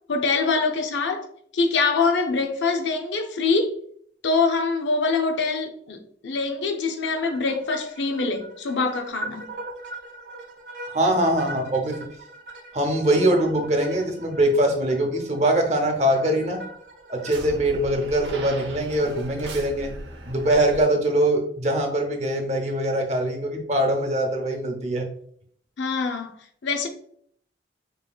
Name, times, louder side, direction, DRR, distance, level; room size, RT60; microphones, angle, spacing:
voice 1, 0.1-1.2 1.5-3.7 4.2-6.0 6.2-9.5 25.8-26.3 26.6-26.9, left 4 dB, 90° left, 0.5 m, -24 dB
sound 1, 7.0-20.8, right 2 dB, 80° right, 0.8 m, -40 dB
voice 2, 10.9-12.0 12.7-16.6 17.1-19.9 20.3-25.1, right 1 dB, 40° right, 0.8 m, -22 dB
5.2 x 3.0 x 2.3 m
head